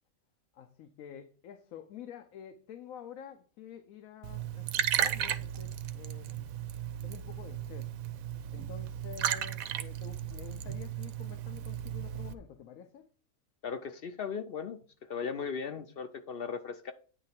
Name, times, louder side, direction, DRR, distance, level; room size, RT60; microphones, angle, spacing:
voice 1, 0.5-6.5 7.0-7.9 8.5-13.1, left 9 dB, 80° left, 1.1 m, -49 dB
Liquid, 4.2-12.3, right 10 dB, 90° right, 1.0 m, -35 dB
voice 2, 13.6-14.8 15.1-16.9, left 6 dB, 55° left, 0.7 m, -37 dB
9.1 x 3.2 x 5.8 m
omnidirectional pair, 1.4 m